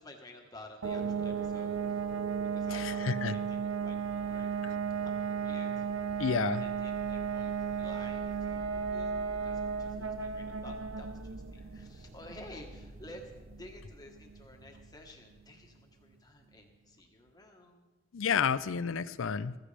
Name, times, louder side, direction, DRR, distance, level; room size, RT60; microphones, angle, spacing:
voice 1, 0.0-2.0 2.5-4.5 5.2-6.2 6.5-17.9, left 1 dB, 20° left, 2 dB, 1.3 m, -52 dB
sound 1, 0.8-15.4, right 6 dB, 80° right, 0.7 m, -35 dB
voice 2, 2.7-3.3 6.2-6.6 18.1-19.6, left 6 dB, 75° left, 16 dB, 0.5 m, -30 dB
sound 2, 6.7-15.4, right 1 dB, 15° right, 0.6 m, -51 dB
15.0 x 14.5 x 3.3 m, 1.2 s
head